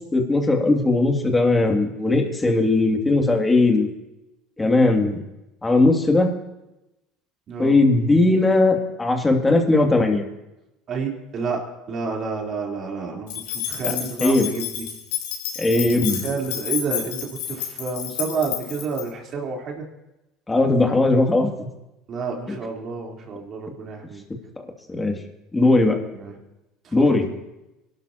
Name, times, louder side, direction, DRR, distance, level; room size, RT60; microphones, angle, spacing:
voice 1, 0.1-3.9 4.6-5.2 5.6-6.3 7.6-10.2 13.8-13.9 14.2-14.5 15.6-16.2 20.5-21.5 24.9-25.1 25.5-25.9 26.9-27.3, left 2 dB, 15° left, 2 dB, 2.7 m, -18 dB
voice 2, 7.5-7.8 10.9-14.8 15.9-16.0 16.2-19.8 22.1-24.2 26.1-26.4 26.8-27.1, right 4 dB, 50° right, -1 dB, 3.9 m, -30 dB
sound 1, 13.3-19.0, left 10 dB, 85° left, 3.6 m, -30 dB
24.0 x 12.0 x 3.0 m, 0.96 s
supercardioid pair, 90°, 0 cm